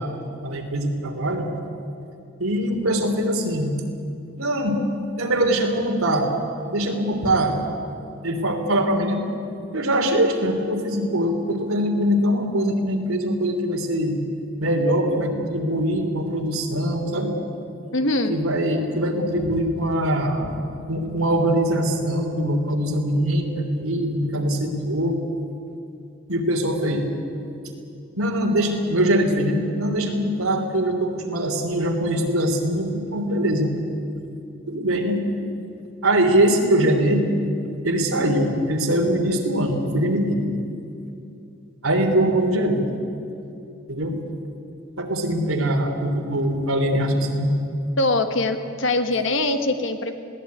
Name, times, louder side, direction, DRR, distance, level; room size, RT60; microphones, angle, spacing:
voice 1, 0.0-1.5 2.4-3.7 4.4-4.8 5.2-6.3 6.7-7.5 8.2-9.2 9.7-14.2 14.6-17.3 18.3-20.5 20.9-25.2 26.3-27.1 28.2-33.7 34.7-35.2 36.0-37.4 37.8-40.5 41.8-42.8 43.9-44.2 45.0-47.5, right 1 dB, 80° right, 3 dB, 3.3 m, -22 dB
voice 2, 17.9-18.3 48.0-50.1, left 2 dB, 60° left, 7 dB, 1.5 m, -22 dB
21.0 x 16.5 x 9.6 m, 2.6 s
head